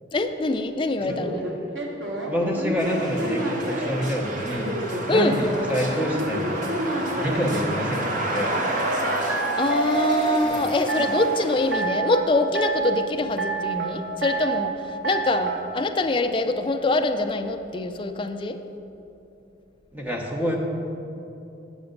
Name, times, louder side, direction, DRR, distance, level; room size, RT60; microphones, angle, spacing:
voice 1, 0.1-1.4 5.1-5.4 9.6-14.7 15.0-18.6, left 2 dB, 25° left, 7 dB, 0.4 m, -24 dB
sound 1, 1.1-4.0 4.6-7.5 8.8-10.4 10.9-11.4 11.7-12.2 12.5-13.0 13.4-13.9 14.2-14.7 15.0-15.6, right 3 dB, 85° right, 1.2 m, -28 dB
voice 2, 2.3-8.5 10.4-10.7 19.9-20.6, equal, 10° right, -1 dB, 0.9 m, -27 dB
sound 2, 2.8-11.8, right 1 dB, 45° right, 0.8 m, -31 dB
7.9 x 6.7 x 5.3 m, 2.9 s
head